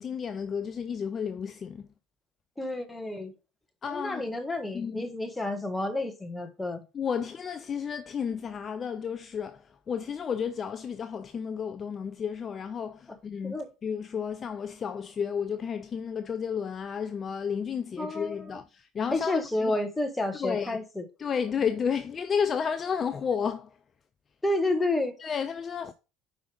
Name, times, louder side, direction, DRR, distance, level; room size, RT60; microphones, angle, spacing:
voice 1, 0.0-1.9 3.8-4.2 4.7-5.1 6.9-13.5 13.8-19.8 20.4-20.8 21.2-23.7 25.2-25.9, left 7 dB, 35° left, 0.4 m, -32 dB
voice 2, 2.6-3.3 3.9-6.8 13.4-13.7 18.0-18.6 19.1-21.0 24.4-25.1, left 2 dB, 10° left, 1.5 m, -30 dB
5.2 x 5.0 x 4.9 m
figure-of-eight pair, 60°, 0 cm